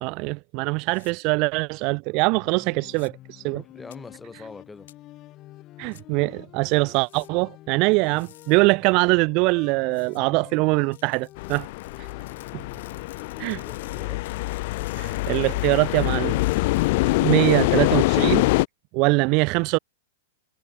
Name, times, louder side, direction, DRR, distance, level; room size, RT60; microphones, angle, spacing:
voice 1, 0.0-3.6 5.8-11.7 13.4-13.6 15.0-16.4 17.2-18.5 18.9-19.8, right 29 dB, 45° right, 0.4 m, -23 dB
sound 1, 0.9-1.1 2.9-3.1 3.9-4.0 4.9-5.0 5.9-6.0 6.9-7.3 7.9-8.6 9.9-10.2 10.9-17.6, left 12 dB, 70° left, 5.3 m, -52 dB
sound 2, 2.2-14.1, left 16 dB, 35° left, 5.1 m, -48 dB
voice 2, 3.5-4.9 13.6-14.2, left 3 dB, 10° left, 4.7 m, -43 dB
sound 3, 11.4-18.7, left 22 dB, 55° left, 0.6 m, -24 dB
hypercardioid pair, 130°, 0 cm